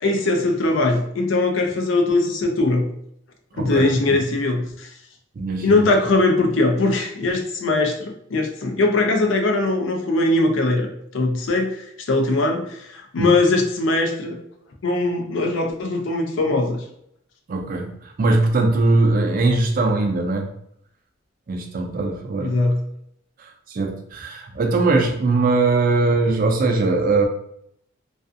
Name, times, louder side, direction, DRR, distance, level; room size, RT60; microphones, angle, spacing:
voice 1, 0.0-2.9 3.6-4.9 5.6-14.4 14.8-16.8 22.4-22.8, left 2 dB, 70° left, 4 dB, 0.5 m, -21 dB
voice 2, 3.5-4.2 5.4-5.9 13.2-13.3 17.5-20.5 21.5-22.6 23.4-27.2, right 3 dB, 45° right, 4 dB, 0.4 m, -21 dB
2.4 x 2.4 x 2.4 m, 0.72 s
head